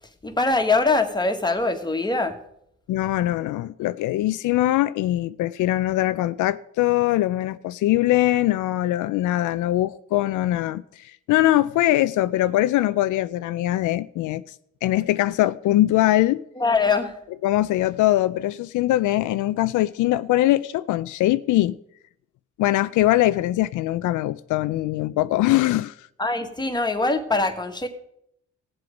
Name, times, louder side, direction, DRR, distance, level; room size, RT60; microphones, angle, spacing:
voice 1, 0.2-2.4 16.6-17.2 26.2-27.9, left 3 dB, 15° left, 1.7 m, -22 dB
voice 2, 2.9-14.5 14.8-16.4 17.4-21.8 22.6-26.0, left 15 dB, 80° left, 0.5 m, -22 dB
16.5 x 7.8 x 5.2 m
cardioid pair, 90°, 30 cm